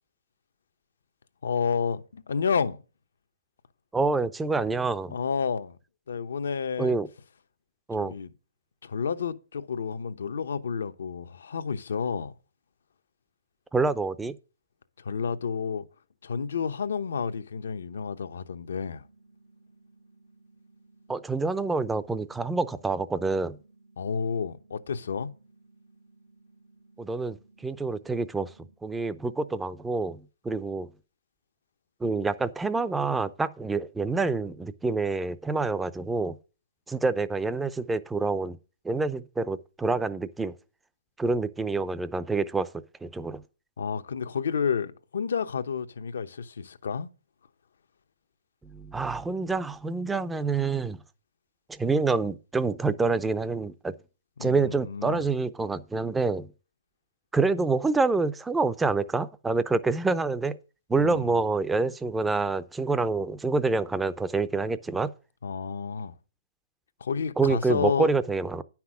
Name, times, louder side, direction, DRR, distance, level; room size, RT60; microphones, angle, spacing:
voice 1, 1.4-2.8 5.1-5.8 6.1-7.0 8.0-8.3 8.8-12.3 15.0-15.9 16.2-19.0 24.0-25.3 43.8-47.1 54.4-55.3 60.9-61.4 65.4-66.1 67.0-68.1, left 6 dB, 75° left, 0.9 m, -30 dB
voice 2, 3.9-5.2 6.8-7.1 7.9-8.1 13.7-14.3 21.1-23.6 27.0-28.5 28.8-30.9 32.0-36.4 36.9-38.6 38.8-40.5 41.2-42.7 43.0-43.4 48.6-51.0 51.7-53.9 54.4-56.5 57.3-60.6 60.9-65.1 67.4-68.6, right 3 dB, 5° right, 0.5 m, -27 dB
sound 1, 18.7-28.7, right 3 dB, 85° right, 2.6 m, -59 dB
9.6 x 6.0 x 6.1 m
hypercardioid pair, 140°, 0 cm